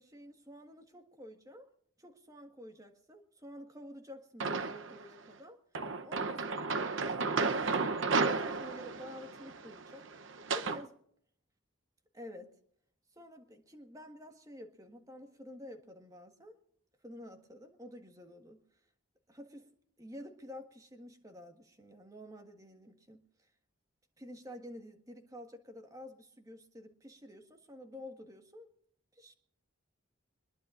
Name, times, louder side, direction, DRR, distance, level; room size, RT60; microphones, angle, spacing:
voice 1, 0.0-1.7 2.0-5.6 6.0-10.1 10.5-11.0 12.1-12.5 13.1-16.6 17.0-18.6 19.3-19.7 20.0-23.2 24.2-28.7 29.1-29.3, left 1 dB, 15° right, 5 dB, 1.6 m, -50 dB
sound 1, 4.4-5.0 5.7-10.8, right 4 dB, 70° right, 0.9 m, -33 dB
23.0 x 21.0 x 2.5 m, 0.69 s
head